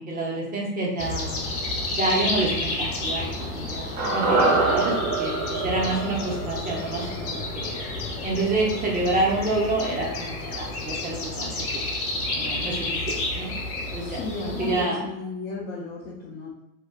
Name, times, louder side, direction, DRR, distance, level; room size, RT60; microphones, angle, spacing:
voice 1, 0.0-1.5 2.0-7.8 8.2-11.8 12.3-12.8 13.1-13.5 13.9-15.0, right 2 dB, 20° right, -3 dB, 0.6 m, -28 dB
sound 1, 1.0-14.8, left 2 dB, 80° left, 1.0 m, -31 dB
sound 2, 4.0-8.3 8.5-8.6, right 3 dB, 55° right, 1.0 m, -26 dB
voice 2, 14.0-16.6, left 3 dB, 25° left, -6 dB, 0.3 m, -34 dB
2.5 x 2.2 x 2.3 m, 0.85 s
hypercardioid pair, 105°, 45 cm